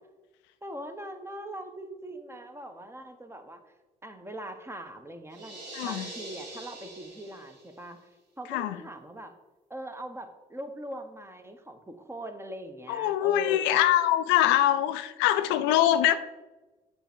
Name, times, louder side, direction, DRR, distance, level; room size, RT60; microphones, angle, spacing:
voice 1, 0.6-3.6 4.0-8.0 8.4-9.3 9.7-13.8 16.0-16.2, right 1 dB, 15° right, 7 dB, 1.1 m, -41 dB
sound 1, 5.3-7.8, right 2 dB, 70° right, 2.3 m, -43 dB
voice 2, 5.7-6.1 8.5-8.8 12.9-16.2, left 12 dB, 75° left, 12 dB, 0.4 m, -23 dB
7.9 x 3.5 x 6.1 m, 1.1 s
hypercardioid pair, 50°, 19 cm